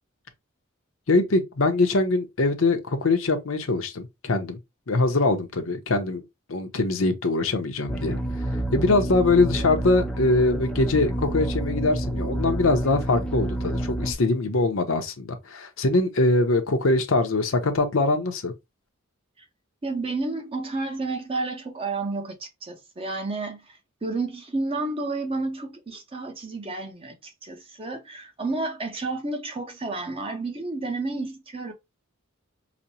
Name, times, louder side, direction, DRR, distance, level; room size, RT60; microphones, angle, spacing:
voice 1, 1.1-4.6 4.9-6.2 6.5-8.2 8.7-18.5, left 2 dB, 65° left, 0.7 m, -23 dB
sound 1, 7.9-14.1, right 1 dB, 5° left, 0.4 m, -29 dB
voice 2, 19.8-31.7, right 3 dB, 25° right, 0.7 m, -31 dB
5.0 x 2.1 x 2.7 m
head